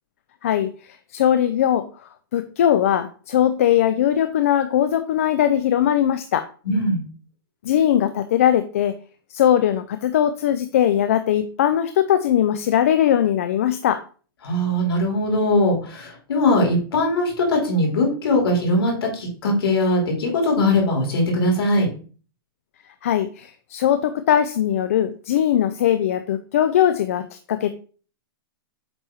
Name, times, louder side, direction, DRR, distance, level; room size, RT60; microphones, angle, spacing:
voice 1, 0.4-1.9 2.3-6.5 7.6-8.9 9.3-14.0 23.0-27.7, left 10 dB, 35° left, 10 dB, 0.3 m, -20 dB
voice 2, 6.6-7.0 14.4-21.9, left 1 dB, 75° left, 0 dB, 3.4 m, -20 dB
7.9 x 3.3 x 4.5 m, 0.40 s
hypercardioid pair, 180°, 13 cm